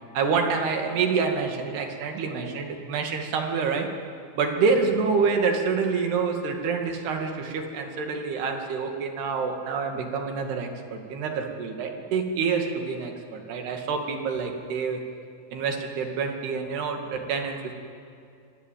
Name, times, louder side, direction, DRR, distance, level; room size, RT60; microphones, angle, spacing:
voice 1, 0.1-3.9 4.3-15.0 15.5-17.7, right 5 dB, 90° right, 3 dB, 4.3 m, -27 dB
25.0 x 22.0 x 9.2 m, 2.5 s
omnidirectional pair, 4.5 m